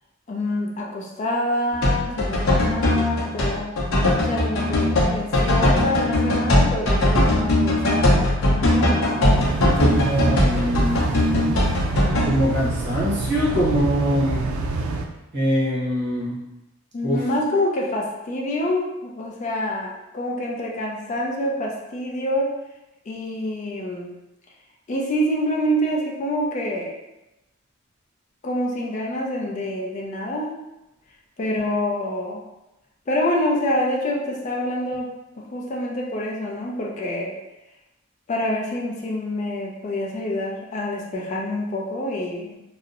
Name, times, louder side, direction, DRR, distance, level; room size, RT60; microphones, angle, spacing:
voice 1, 0.3-3.7 4.2-8.3 8.5-9.9 16.9-22.5 23.1-24.1 24.9-26.9 28.4-30.5 31.4-32.4 33.1-35.1 35.4-37.4 38.3-42.6, left 1 dB, 35° left, -1 dB, 0.4 m, -26 dB
sound 1, 1.7-12.3, left 1 dB, 80° left, 0.6 m, -20 dB
sound 2, 9.3-15.1, right 3 dB, 85° right, 0.3 m, -27 dB
voice 2, 9.8-11.1 12.2-14.5 15.3-16.4 17.0-17.2, equal, 55° right, -5 dB, 0.8 m, -23 dB
2.6 x 2.0 x 2.4 m, 0.95 s
head